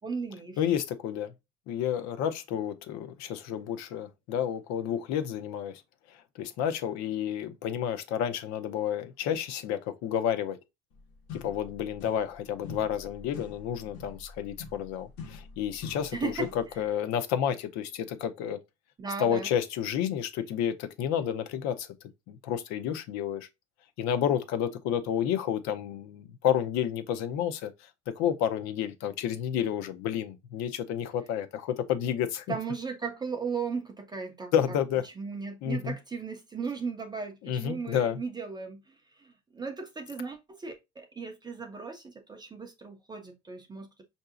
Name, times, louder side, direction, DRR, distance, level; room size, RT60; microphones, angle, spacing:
voice 1, 0.0-0.6 16.1-16.5 19.0-19.5 32.5-34.5 35.2-44.0, right 5 dB, 15° right, 0.4 m, -36 dB
voice 2, 0.6-1.3 1.7-5.8 6.1-10.6 11.3-18.6 19.2-21.9 22.3-23.5 24.0-32.5 34.5-35.0 35.6-36.0 37.4-38.2, left 9 dB, 65° left, 0.7 m, -30 dB
sound 1, 10.9-11.0 11.3-12.4 12.6-16.8, left 4 dB, 85° left, 1.3 m, -45 dB
5.6 x 2.7 x 2.4 m
cardioid pair, 160°, 30 cm